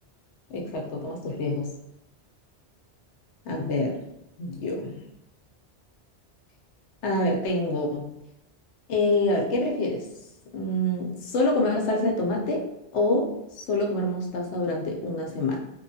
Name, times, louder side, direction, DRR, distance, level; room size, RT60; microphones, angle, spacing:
voice 1, 0.5-1.7 3.4-4.0 4.4-5.0 7.0-8.1 8.9-10.1 10.5-12.6 12.9-13.3 13.6-15.6, left 2 dB, 85° left, 1 dB, 0.9 m, -26 dB
2.9 x 2.2 x 2.6 m, 0.84 s
omnidirectional pair, 1.1 m